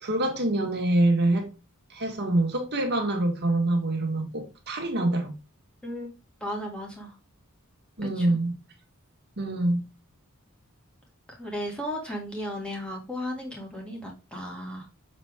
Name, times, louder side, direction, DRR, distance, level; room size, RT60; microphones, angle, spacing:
voice 1, 0.0-1.5 1.9-5.4 8.0-8.6 9.4-9.8, right 1 dB, 50° right, 1.7 m, -25 dB
voice 2, 6.4-7.1 8.2-8.4 11.4-14.9, equal, 5° left, 2.1 m, -35 dB
6.6 x 4.4 x 3.5 m
head